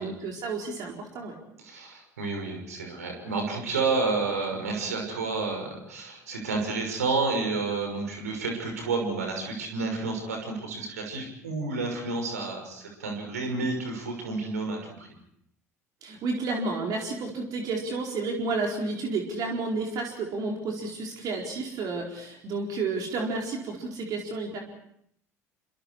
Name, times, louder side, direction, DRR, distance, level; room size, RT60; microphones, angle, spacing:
voice 1, 0.0-1.3 16.0-24.6, right 3 dB, 50° right, 0 dB, 4.4 m, -31 dB
voice 2, 1.6-15.1, right 3 dB, 75° right, 3 dB, 6.2 m, -30 dB
29.0 x 26.0 x 4.8 m, 0.70 s
figure-of-eight pair, 60°, 8 cm